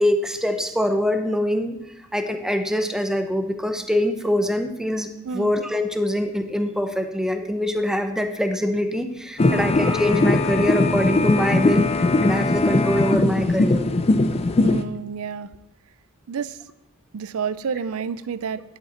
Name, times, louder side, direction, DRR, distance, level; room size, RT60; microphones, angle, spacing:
voice 1, 0.0-5.1 5.3-13.9, left 1 dB, ahead, 6 dB, 0.8 m, -24 dB
sound 1, 9.4-14.8, left 2 dB, 30° left, 0.4 m, -20 dB
voice 2, 14.6-15.5 16.3-16.6 17.1-18.6, right 6 dB, 70° right, 15 dB, 0.5 m, -29 dB
10.5 x 8.3 x 4.3 m, 0.87 s
head